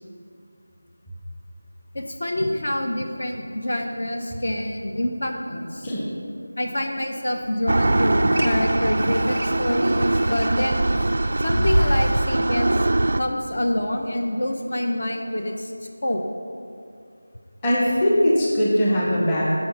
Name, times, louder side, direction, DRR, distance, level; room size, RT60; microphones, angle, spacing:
voice 1, 1.9-5.9 6.6-10.8 11.4-12.9 13.2-15.7 16.0-16.2, left 1 dB, 45° left, 3 dB, 0.8 m, -26 dB
sound 1, 7.4-12.3, equal, 85° left, 1.5 m, -29 dB
sound 2, 7.7-13.2, right 2 dB, 45° right, 0.3 m, -22 dB
voice 2, 17.6-19.4, equal, 10° left, -6 dB, 0.9 m, -20 dB
13.5 x 5.6 x 5.5 m, 2.3 s
figure-of-eight pair, 180°, 0 cm